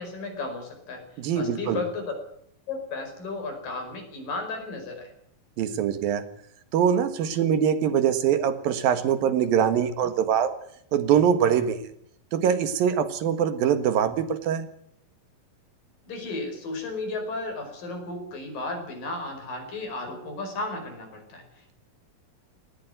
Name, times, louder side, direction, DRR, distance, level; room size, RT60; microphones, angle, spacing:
voice 1, 0.0-2.2 2.7-5.1 16.1-21.7, left 3 dB, 70° left, 4 dB, 6.8 m, -34 dB
voice 2, 1.2-1.8 5.6-6.2 6.7-10.5 10.9-11.8 12.3-14.7, right 8 dB, 80° right, 11 dB, 3.3 m, -23 dB
18.5 x 15.5 x 9.2 m, 0.70 s
omnidirectional pair, 4.1 m